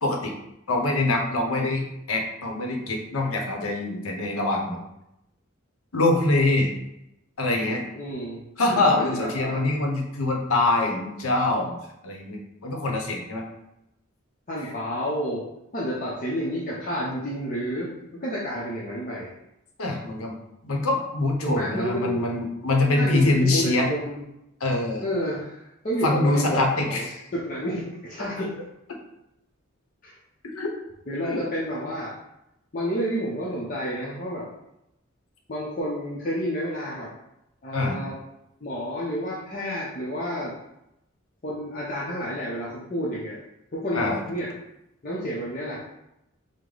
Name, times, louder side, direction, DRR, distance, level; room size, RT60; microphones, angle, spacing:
voice 1, 0.0-0.3 0.7-4.8 5.9-6.7 7.4-7.8 8.6-11.7 12.0-13.4 14.6-14.7 19.8-20.4 20.6-23.9 24.6-25.0 26.0-27.2 30.4-30.7 31.2-31.4 37.7-38.0 43.9-44.2, left 2 dB, 90° left, 1 dB, 0.8 m, -24 dB
voice 2, 7.9-8.4 8.7-9.6 14.5-15.4 15.7-19.3 21.4-22.3 23.0-24.2 25.0-26.6 26.9-27.0 27.3-28.5 30.0-30.1 31.1-32.1 32.7-34.5 35.5-37.1 37.6-38.2 38.6-40.5 41.4-43.4 43.7-44.5 45.0-45.8, equal, 40° left, -6 dB, 0.7 m, -30 dB
4.9 x 2.1 x 3.8 m, 0.85 s
head